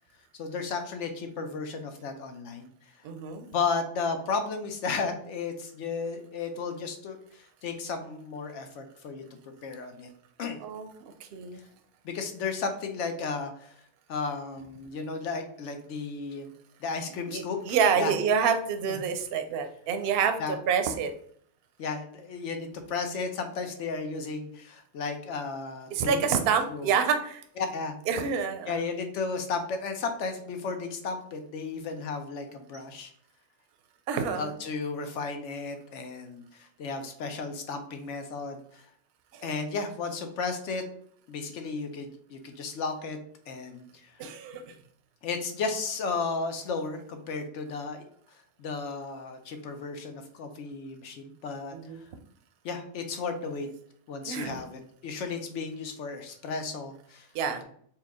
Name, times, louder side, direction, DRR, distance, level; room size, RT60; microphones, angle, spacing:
voice 1, 0.4-2.7 3.5-9.2 9.6-10.1 10.4-10.6 12.0-13.7 14.1-16.5 16.8-18.1 18.9-19.0 20.4-20.6 21.8-26.3 26.7-26.9 27.6-27.9 28.7-33.1 34.3-38.8 39.4-40.8 41.3-43.2 43.5-43.8 44.2-44.3 45.2-48.0 48.6-51.7 52.6-53.7 54.1-57.3, left 4 dB, 80° left, 6 dB, 1.0 m, -34 dB
voice 2, 3.0-3.5 10.6-10.9 11.2-11.6 17.3-20.4 20.7-21.1 25.9-27.4 28.1-28.8 34.1-34.5 39.3-39.4 44.2-44.7 51.7-52.0 54.3-54.6 57.3-57.6, right 6 dB, 65° right, 7 dB, 0.7 m, -27 dB
4.4 x 2.2 x 3.5 m, 0.62 s
omnidirectional pair, 1.2 m